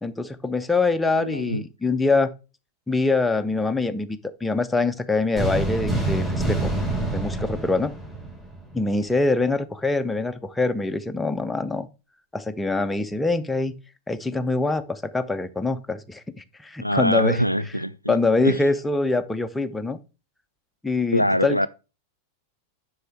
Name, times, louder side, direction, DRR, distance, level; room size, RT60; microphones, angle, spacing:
voice 1, 0.0-2.3 2.9-6.7 7.1-7.9 8.7-11.9 12.3-13.7 14.1-16.2 16.6-17.4 18.1-20.0 20.8-21.7, left 3 dB, 5° left, 0.7 m, -24 dB
voice 2, 1.1-1.6 16.8-18.2 18.4-18.6 21.1-21.7, equal, 90° left, 0.3 m, -24 dB
sound 1, 5.4-8.8, right 2 dB, 10° right, 3.5 m, -26 dB
7.8 x 6.2 x 3.4 m
figure-of-eight pair, 90°, 0 cm